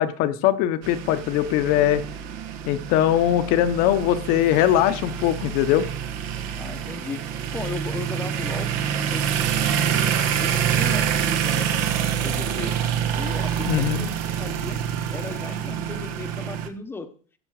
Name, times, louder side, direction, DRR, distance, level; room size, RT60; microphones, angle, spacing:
voice 1, 0.0-2.0 2.7-5.8 13.7-14.1, left 11 dB, 55° left, 12 dB, 1.1 m, -21 dB
sound 1, 0.8-16.7, right 8 dB, 55° right, 1.4 m, -26 dB
voice 2, 6.5-7.2 7.5-9.7 10.4-12.8 13.2-14.8 15.1-17.1, left 4 dB, 10° left, 9 dB, 1.0 m, -36 dB
16.0 x 6.1 x 4.9 m, 0.43 s
supercardioid pair, 150°, 17 cm